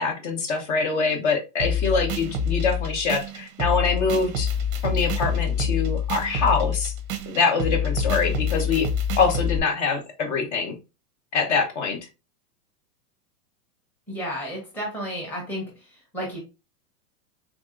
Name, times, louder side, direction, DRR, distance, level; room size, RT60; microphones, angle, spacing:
voice 1, 0.0-4.5 4.8-6.9 7.3-8.9 9.2-10.7 11.3-12.0, left 4 dB, 50° left, 5 dB, 1.0 m, -24 dB
sound 1, 1.6-9.6, left 5 dB, 35° right, 0.5 m, -26 dB
voice 2, 14.1-15.7 16.1-16.4, equal, 5° left, -3 dB, 0.8 m, -31 dB
3.6 x 2.6 x 2.4 m, 0.27 s
supercardioid pair, 145°, 47 cm